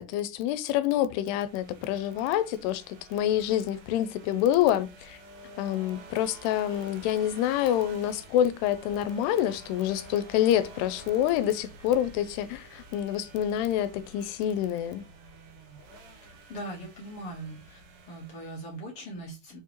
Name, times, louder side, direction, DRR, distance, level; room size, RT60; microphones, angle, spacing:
voice 1, 0.0-5.2 5.6-15.0, left 11 dB, 85° left, 2.7 m, -27 dB
sound 1, 1.1-18.9, right 2 dB, 85° right, 3.5 m, -50 dB
voice 2, 16.3-17.8 18.1-19.6, right 1 dB, 55° left, 1.6 m, -40 dB
6.8 x 4.7 x 3.0 m
omnidirectional pair, 4.7 m